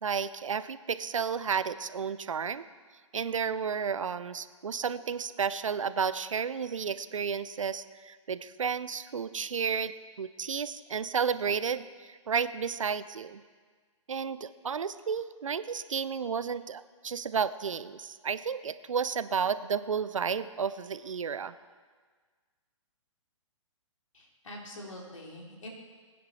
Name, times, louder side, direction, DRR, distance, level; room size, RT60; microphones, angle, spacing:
voice 1, 0.0-2.6 3.1-13.4 14.1-21.5, right 6 dB, 75° right, 14 dB, 0.7 m, -32 dB
voice 2, 24.1-25.7, left 1 dB, 75° left, -1 dB, 3.7 m, -44 dB
21.0 x 9.6 x 4.3 m, 1.5 s
figure-of-eight pair, 125°, 17 cm